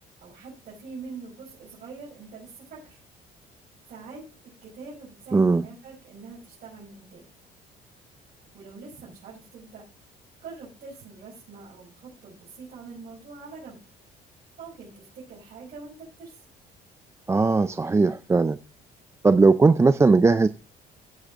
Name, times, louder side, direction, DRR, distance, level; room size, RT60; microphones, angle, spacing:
voice 1, 0.2-3.0 3.9-7.2 8.5-9.8 10.4-13.8 14.6-16.4, right 4 dB, 55° right, -5 dB, 5.4 m, -44 dB
voice 2, 5.3-5.7 17.3-18.6 19.2-20.5, right 3 dB, 15° right, 12 dB, 0.5 m, -18 dB
15.5 x 7.5 x 3.7 m, 0.31 s
cardioid pair, 110°, 17 cm